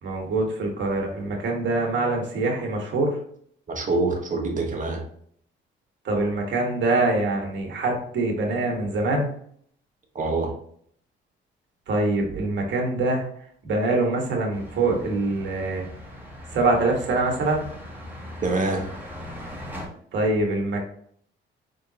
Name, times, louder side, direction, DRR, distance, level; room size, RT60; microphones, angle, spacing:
voice 1, 0.0-3.2 6.0-9.3 11.9-13.2 13.6-15.8 16.5-17.7 20.1-20.8, right 2 dB, 65° right, 1 dB, 1.6 m, -24 dB
voice 2, 3.7-5.0 10.1-10.5 18.4-18.9, right 3 dB, 40° right, 2 dB, 1.3 m, -25 dB
sound 1, 14.5-19.9, left 1 dB, 10° right, 1.6 m, -40 dB
4.8 x 3.7 x 2.9 m, 0.62 s
cardioid pair, 90°, 20 cm